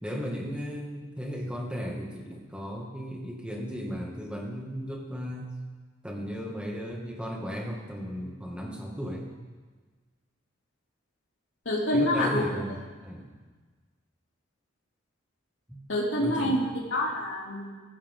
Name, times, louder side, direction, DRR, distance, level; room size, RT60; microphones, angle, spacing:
voice 1, 0.0-5.5 6.0-9.3 11.9-13.3 15.7-15.8 16.2-16.7, equal, 5° right, -1 dB, 2.2 m, -35 dB
voice 2, 11.6-12.4 15.9-16.6 16.9-17.7, left 1 dB, 80° left, -4 dB, 2.8 m, -26 dB
23.5 x 14.0 x 3.8 m, 1.4 s
head